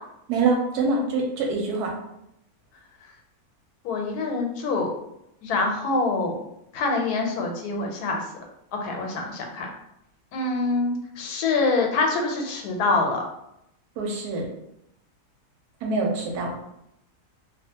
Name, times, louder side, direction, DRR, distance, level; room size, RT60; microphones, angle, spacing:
voice 1, 0.3-1.9 14.0-14.5 15.8-16.6, right 3 dB, 85° right, 0 dB, 1.2 m, -25 dB
voice 2, 3.8-4.9 5.4-6.4 6.7-8.2 8.8-9.7 10.3-13.2, left 3 dB, 85° left, 2 dB, 1.1 m, -25 dB
2.5 x 2.3 x 2.7 m, 0.81 s
omnidirectional pair, 1.6 m